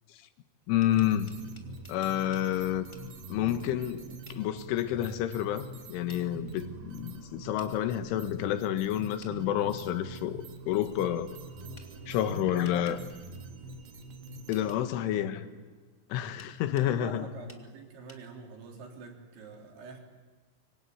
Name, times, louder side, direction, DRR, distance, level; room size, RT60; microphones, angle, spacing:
sound 1, 0.6-2.5 2.9-3.1 4.2-4.4 6.1-6.2 7.6-7.7 9.2-9.4 11.7-11.9 12.6-13.0 14.5-14.8 16.4-16.9 17.5-17.6 18.1-18.2, left 1 dB, 15° left, 0.8 m, -54 dB
voice 1, 0.7-1.4 1.9-2.9 3.3-4.0 4.3-11.3 12.1-13.0 14.5-15.4 16.1-17.3, left 11 dB, 85° left, 3.9 m, -29 dB
sound 2, 0.9-14.7, right 3 dB, 55° right, 3.5 m, -45 dB
voice 2, 12.3-12.8 14.9-15.6 16.8-20.0, right 4 dB, 70° right, 5.9 m, -46 dB
26.0 x 24.0 x 9.5 m
omnidirectional pair, 5.5 m